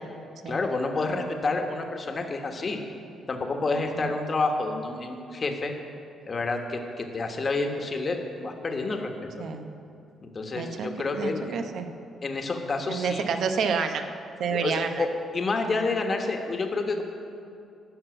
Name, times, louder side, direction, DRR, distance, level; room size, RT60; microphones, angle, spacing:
voice 1, 0.5-2.8 3.3-5.7 6.3-8.2 8.4-9.4 10.2-11.4 12.2-13.2 14.5-15.1 15.3-17.0, left 3 dB, 40° left, 4 dB, 1.3 m, -29 dB
voice 2, 9.4-9.7 10.5-11.9 12.9-14.0 14.4-15.1, right 5 dB, 70° right, 7 dB, 0.8 m, -29 dB
12.5 x 5.4 x 8.2 m, 2.5 s
cardioid pair, 90°, 0 cm